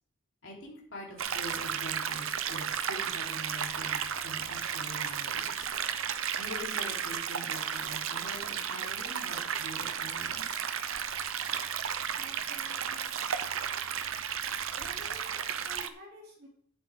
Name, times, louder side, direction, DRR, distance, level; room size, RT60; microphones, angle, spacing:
voice 1, 0.4-5.7 6.3-10.5, equal, 60° left, -3 dB, 4.0 m, -44 dB
sound 1, 1.2-15.9, right 8 dB, 70° right, 0.7 m, -34 dB
voice 2, 12.1-13.1 14.8-16.5, left 1 dB, 50° right, -1 dB, 3.4 m, -51 dB
12.0 x 10.5 x 3.8 m, 0.62 s
head